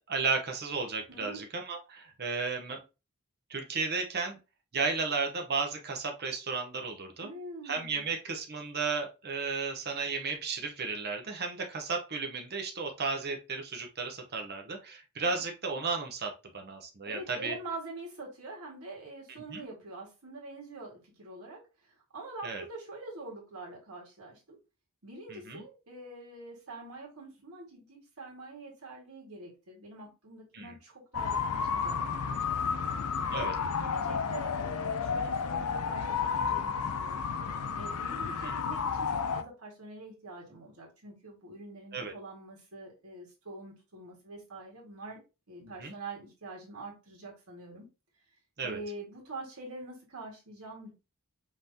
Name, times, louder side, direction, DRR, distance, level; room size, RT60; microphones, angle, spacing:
voice 1, 0.1-2.8 3.5-4.4 4.7-7.3 7.6-17.5 19.5-19.6 22.4-22.6 25.3-25.6 30.5-30.8 33.3-33.5 38.4-38.5 41.9-42.1 45.6-45.9 48.6-48.8, right 4 dB, 50° right, 3 dB, 0.8 m, -34 dB
voice 2, 1.1-1.4 7.2-8.0 15.2-15.4 17.1-24.6 25.0-32.6 33.3-37.2 37.7-45.2 45.5-47.9 48.6-50.9, right 2 dB, 80° right, -2 dB, 1.8 m, -45 dB
sound 1, 31.1-39.4, left 6 dB, 90° left, 0.5 m, -32 dB
5.5 x 3.1 x 2.7 m, 0.29 s
head